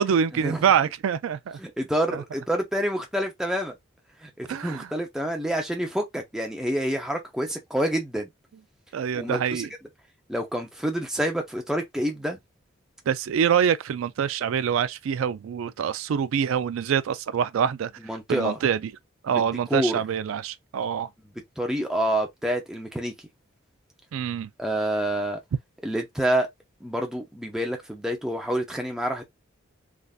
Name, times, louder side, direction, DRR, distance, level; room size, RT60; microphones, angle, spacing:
voice 1, 0.0-1.6 2.1-2.2 4.5-4.9 8.9-9.7 13.1-17.9 18.3-18.9 19.2-21.1 24.1-24.5, right 8 dB, 80° right, 0.3 m, -25 dB
voice 2, 1.6-3.7 4.2-8.3 9.1-9.6 10.3-12.4 18.0-18.6 19.3-19.4 19.7-20.0 21.6-23.1 24.6-25.4 25.8-26.5 26.8-29.2, right 1 dB, 5° right, 0.6 m, -27 dB
3.5 x 2.6 x 2.4 m
head